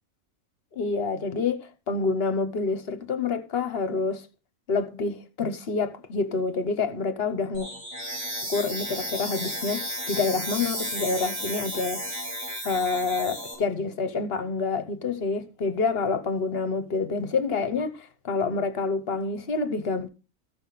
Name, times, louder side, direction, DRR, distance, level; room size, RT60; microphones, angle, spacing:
voice 1, 0.7-4.2 4.7-7.7 8.4-12.0 12.6-20.1, left 4 dB, 50° left, 1.2 m, -27 dB
sound 1, 7.5-13.5, equal, 70° right, 5.7 m, -33 dB
14.0 x 5.7 x 5.8 m
omnidirectional pair, 1.4 m